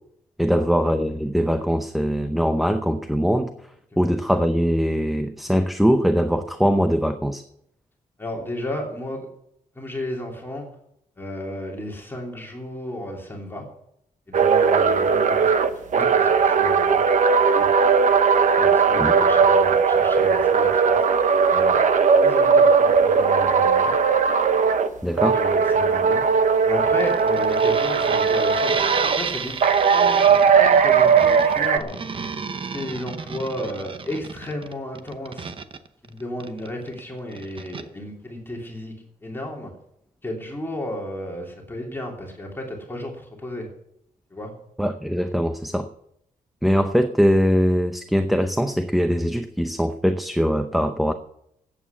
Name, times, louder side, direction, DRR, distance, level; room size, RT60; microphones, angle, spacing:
voice 1, 0.4-3.5 4.0-7.4 19.0-19.1 25.0-25.4 44.8-45.9 46.6-51.1, equal, ahead, 7 dB, 0.7 m, -21 dB
voice 2, 8.2-9.3 9.7-10.7 11.2-13.7 14.3-17.0 17.6-17.7 18.5-21.0 21.5-21.8 22.2-23.9 25.2-28.8 29.1-29.5 29.9-32.0 32.7-35.5 36.0-38.9 39.2-39.7 40.2-43.7 44.3-44.5, left 1 dB, 15° left, -1 dB, 3.0 m, -33 dB
sound 1, 14.3-24.9 25.2-29.2 29.6-31.8, right 5 dB, 60° right, 1.1 m, -18 dB
sound 2, 27.0-37.0 37.3-37.8, right 5 dB, 35° right, 0.8 m, -32 dB
14.5 x 8.7 x 6.9 m, 0.75 s
wide cardioid pair, 140°, 15 cm